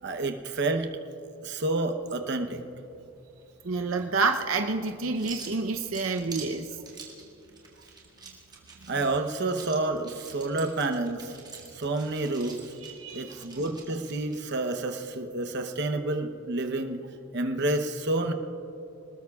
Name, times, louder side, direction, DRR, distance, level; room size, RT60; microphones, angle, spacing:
voice 1, 0.0-0.9 1.4-2.6 8.9-11.4 11.7-12.6 13.1-17.0 17.3-18.3, right 2 dB, 55° right, 6 dB, 0.9 m, -29 dB
sound 1, 2.2-14.4, right 5 dB, 20° right, 1.9 m, -48 dB
voice 2, 3.6-6.7 12.8-13.4, right 4 dB, 80° right, 5 dB, 0.7 m, -28 dB
27.0 x 19.5 x 2.4 m, 2.8 s
head